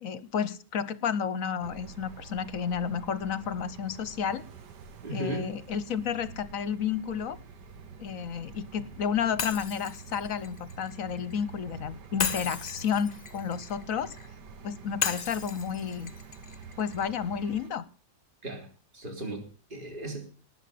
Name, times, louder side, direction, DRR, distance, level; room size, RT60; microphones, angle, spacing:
voice 1, 0.0-4.4 5.1-7.4 8.0-14.2 14.6-16.1 16.8-17.8, left 7 dB, 55° left, 16 dB, 1.2 m, -31 dB
sound 1, 1.6-17.7, right 5 dB, 80° right, 1.9 m, -47 dB
voice 2, 5.0-5.5 18.4-18.7 18.9-20.2, right 1 dB, 30° right, 2 dB, 3.6 m, -36 dB
Shatter, 9.4-11.4 12.2-14.3 15.0-17.1, left 5 dB, 30° left, 0.8 m, -35 dB
19.0 x 7.1 x 6.8 m, 0.41 s
omnidirectional pair, 1.8 m